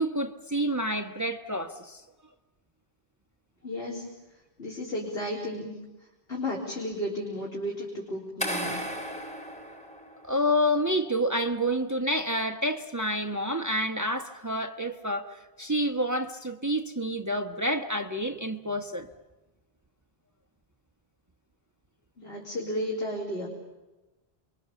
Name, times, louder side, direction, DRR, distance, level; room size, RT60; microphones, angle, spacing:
voice 1, 0.0-2.0 10.2-19.1, equal, 15° right, 1.1 m, -28 dB
voice 2, 3.6-4.1 4.6-5.7 6.3-8.8 22.2-23.5, left 1 dB, 70° left, 4.3 m, -33 dB
sound 1, 8.4-10.5, equal, 5° left, 4.0 m, -35 dB
29.0 x 23.5 x 7.1 m
omnidirectional pair, 1.1 m